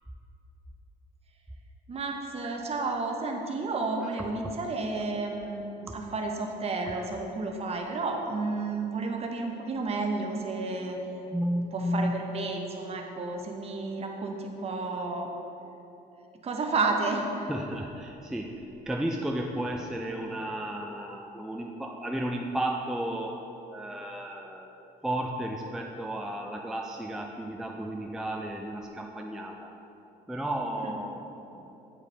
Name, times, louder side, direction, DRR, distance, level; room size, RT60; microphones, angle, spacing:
voice 1, 1.9-5.6 5.9-11.0 11.7-15.3 16.4-17.5 30.8-30.9, right 3 dB, 35° right, 2 dB, 0.8 m, -31 dB
voice 2, 11.3-12.2 17.5-23.4 23.7-24.7 25.0-29.7 30.3-31.2 31.5-31.7, right 1 dB, 5° right, 1 dB, 0.3 m, -33 dB
8.5 x 4.8 x 3.3 m, 3.0 s
cardioid pair, 110°, 17 cm